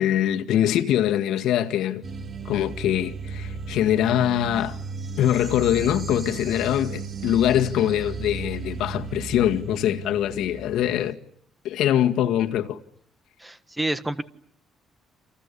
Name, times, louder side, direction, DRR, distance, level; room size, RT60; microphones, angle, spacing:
voice 1, 0.0-2.0 2.5-4.8 5.2-11.2 11.6-12.8, left 11 dB, 80° left, 2.0 m, -23 dB
sound 1, 2.0-11.1, right 4 dB, 35° right, 2.7 m, -35 dB
voice 2, 13.4-14.2, right 1 dB, 10° right, 1.4 m, -28 dB
29.5 x 27.5 x 7.0 m
cardioid pair, 150°, 0 cm